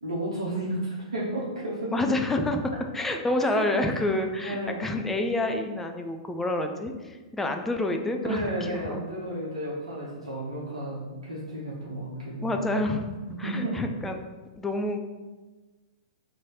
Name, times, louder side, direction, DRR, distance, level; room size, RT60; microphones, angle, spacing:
voice 1, 0.0-1.9 3.4-4.1 4.4-4.8 8.2-12.7 13.4-13.8, right 1 dB, 80° right, -7 dB, 0.8 m, -32 dB
voice 2, 1.9-9.1 12.4-14.2 14.6-15.0, left 2 dB, 10° left, 4 dB, 0.4 m, -28 dB
3.1 x 2.6 x 4.1 m, 1.2 s
figure-of-eight pair, 105°, 3 cm